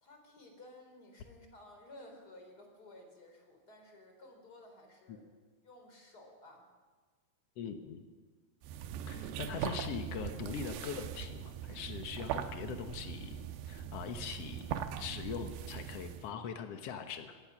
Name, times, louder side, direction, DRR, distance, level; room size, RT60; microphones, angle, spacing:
voice 1, 0.0-5.3 5.6-6.7, left 1 dB, 25° left, 3 dB, 3.9 m, -55 dB
voice 2, 7.6-8.0 9.1-13.4 13.6-17.4, left 7 dB, 85° left, 6 dB, 1.3 m, -42 dB
sound 1, 8.6-16.3, right 9 dB, 85° right, 2.9 m, -41 dB
25.0 x 18.0 x 6.0 m, 1.5 s
omnidirectional pair, 4.6 m